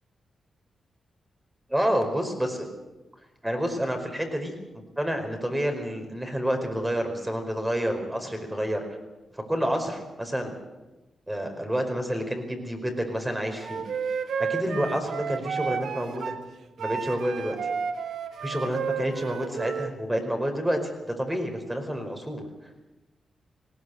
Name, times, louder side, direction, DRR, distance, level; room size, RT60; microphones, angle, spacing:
voice 1, 1.7-2.7 3.4-4.6 5.0-8.8 9.5-10.6 11.3-16.3 16.8-17.6 18.4-22.4, equal, 10° right, 4 dB, 4.8 m, -29 dB
Wind instrument woodwind instrument, 13.6-16.4 16.8-19.9, right 6 dB, 80° right, 1.6 m, -32 dB
19.5 x 17.5 x 8.1 m, 1.1 s
cardioid pair, 75°, 0 cm